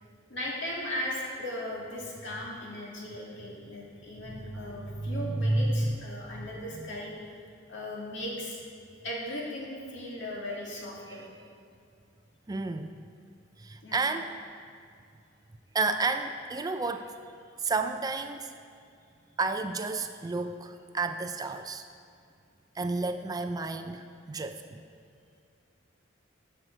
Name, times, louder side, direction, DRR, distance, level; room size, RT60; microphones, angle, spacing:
voice 1, 0.3-7.1 7.7-8.6 9.0-11.3 13.8-14.1, left 1 dB, 65° left, -4 dB, 2.3 m, -37 dB
voice 2, 4.2-4.6 4.9-5.9 6.7-6.9 11.1-11.3 12.5-12.9 13.6-14.3 15.7-17.1 17.6-18.5 19.4-21.8 22.8-24.8, right 3 dB, 20° right, 8 dB, 0.3 m, -31 dB
12.0 x 7.6 x 4.6 m, 2.4 s
head